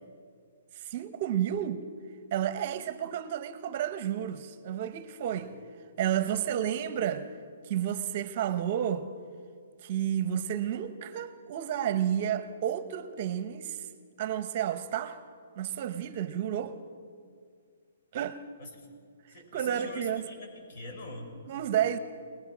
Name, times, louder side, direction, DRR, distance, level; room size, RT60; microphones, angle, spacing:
voice 1, 0.8-1.8 2.3-5.5 6.0-7.3 7.7-9.1 9.8-13.8 14.2-15.2 15.6-16.7 18.1-18.4 19.5-20.2 21.5-22.0, right 10 dB, 40° right, 0.9 m, -31 dB
voice 2, 18.6-18.9 19.3-21.3, left 2 dB, 45° left, 6.0 m, -45 dB
23.5 x 19.5 x 6.2 m
hypercardioid pair, 160°, 0 cm